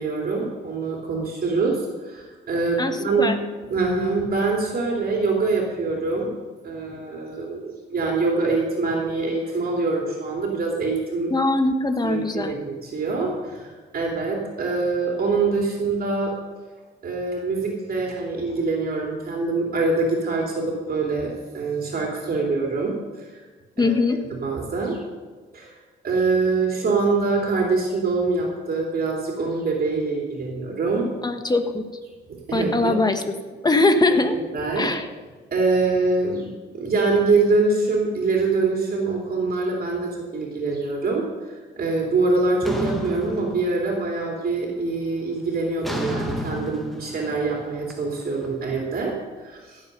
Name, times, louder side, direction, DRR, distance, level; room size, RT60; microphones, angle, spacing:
voice 1, 0.0-3.3 3.7-6.3 6.6-11.3 12.0-16.3 17.0-23.4 23.8-23.9 24.4-25.0 25.5-25.7 26.0-31.1 32.3-32.9 34.5-34.9 35.5-49.8, right 3 dB, 50° right, -1 dB, 3.0 m, -24 dB
voice 2, 2.8-3.4 11.3-12.5 23.8-24.2 31.2-31.8 32.5-33.2 33.6-34.4 34.8-35.1, left 2 dB, 20° left, 8 dB, 1.3 m, -21 dB
sound 1, 42.6-44.2 44.5-44.9 45.8-48.9, equal, ahead, 2.0 m, -32 dB
16.0 x 7.7 x 5.4 m, 1.4 s
cardioid pair, 90°, 20 cm